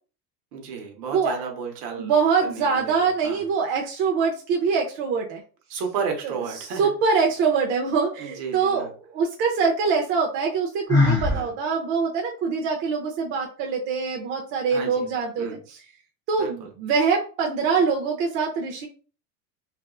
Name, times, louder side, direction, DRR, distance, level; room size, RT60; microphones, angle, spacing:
voice 1, 0.5-2.2 2.4-3.4 5.7-6.9 8.2-8.9 11.3-11.5 14.7-15.0 15.4-15.6 16.4-16.7, right 6 dB, 70° right, 3 dB, 1.0 m, -33 dB
voice 2, 2.0-5.4 6.7-15.8 16.3-18.9, right 5 dB, 55° right, 0 dB, 0.6 m, -24 dB
Sigh, 10.9-11.4, left 3 dB, 10° left, 0.5 m, -19 dB
2.6 x 2.3 x 2.3 m, 0.37 s
supercardioid pair, 145°, 48 cm